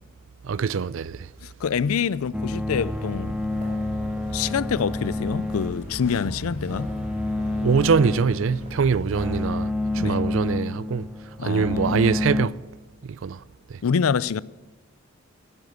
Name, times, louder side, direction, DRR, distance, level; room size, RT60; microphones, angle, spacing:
voice 1, 0.4-1.3 7.6-11.1 11.4-12.6 13.0-13.4 13.7-13.8, right 5 dB, 65° right, 0.4 m, -23 dB
voice 2, 1.4-3.4 4.3-7.0 10.0-10.2 11.4-12.1 13.8-14.4, left 6 dB, 85° left, 0.4 m, -26 dB
sound 1, 2.3-12.5, left 2 dB, 5° right, 0.7 m, -29 dB
sound 2, 2.7-9.5, equal, 30° right, 4.6 m, -41 dB
sound 3, 5.8-8.6 8.9-9.0, equal, 60° left, 1.2 m, -41 dB
14.5 x 10.0 x 7.9 m
head